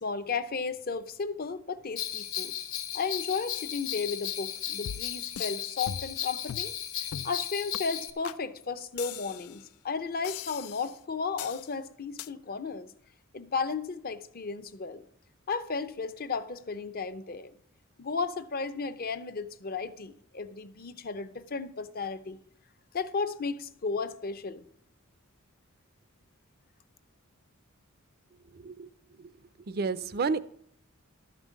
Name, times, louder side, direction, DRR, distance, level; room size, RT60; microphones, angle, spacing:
voice 1, 0.0-2.5 2.9-6.7 7.2-12.9 13.3-15.0 15.5-17.5 18.0-22.4 22.9-24.6, left 4 dB, 45° left, 0.7 m, -34 dB
Bell, 2.0-8.1, left 11 dB, 65° left, 1.1 m, -35 dB
sound 1, 4.9-5.6 5.9-6.2 6.5-6.7 7.1-7.4 7.7-7.8 8.2-8.4 9.0-9.6 10.2-11.0 11.4-11.7 12.2-12.3, left 9 dB, 90° left, 0.4 m, -40 dB
voice 2, 28.5-29.3 29.6-30.4, right 4 dB, 45° right, 0.5 m, -32 dB
12.5 x 5.4 x 7.3 m
head